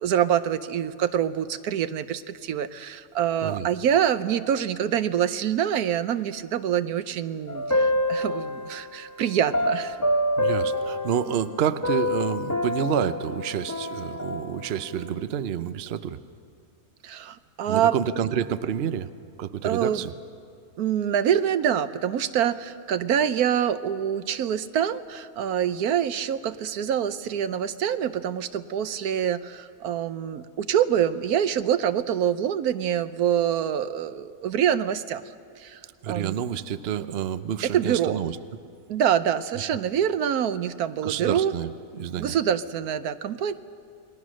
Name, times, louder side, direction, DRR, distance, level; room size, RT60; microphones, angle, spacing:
voice 1, 0.0-10.0 17.0-17.9 19.6-20.0 20.8-35.2 35.6-35.8 36.1-36.4 37.6-38.2 38.9-41.5 42.2-43.5, right 9 dB, 75° right, 13 dB, 1.2 m, -25 dB
sound 1, 7.5-8.9 9.5-11.5 11.8-14.8, left 1 dB, 15° left, 0.6 m, -27 dB
voice 2, 10.4-16.2 17.7-19.1 19.4-20.1 36.0-38.4 41.0-42.3, right 8 dB, 50° right, 13 dB, 0.8 m, -28 dB
28.5 x 21.0 x 6.3 m, 2.3 s
omnidirectional pair, 1.6 m